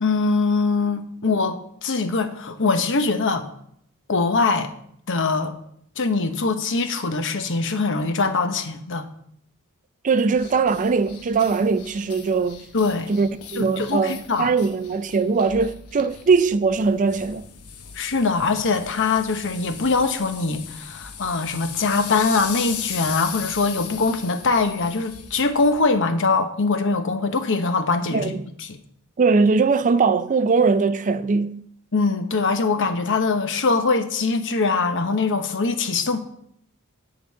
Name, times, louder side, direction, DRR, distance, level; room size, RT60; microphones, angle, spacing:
voice 1, 0.0-3.5 4.1-4.7 5.1-5.6 6.0-9.1 12.7-13.1 13.5-14.5 17.9-28.4 28.7-28.8 31.9-36.2, left 4 dB, 60° left, 1.0 m, -22 dB
voice 2, 10.0-12.6 13.1-17.5 28.1-28.5 29.2-31.6, right 4 dB, 35° right, 0.4 m, -21 dB
sound 1, 10.3-25.8, left 8 dB, 80° left, 1.0 m, -38 dB
10.5 x 3.9 x 7.6 m
head